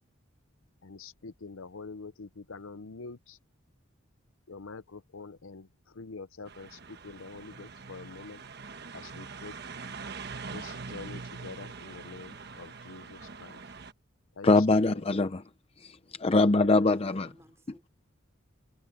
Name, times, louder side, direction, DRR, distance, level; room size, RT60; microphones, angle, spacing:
voice 1, 0.8-3.4 4.5-5.7 6.0-8.4 9.0-9.5 10.5-13.6 14.4-14.5 16.6-16.9, left 4 dB, 85° left, 0.7 m, -45 dB
sound 1, 6.5-13.9, right 4 dB, 50° right, 1.2 m, -43 dB
voice 2, 14.4-15.4 15.8-17.3, left 2 dB, 30° left, 0.5 m, -23 dB
voice 3, 16.2-17.9, right 1 dB, 15° right, 4.1 m, -60 dB
head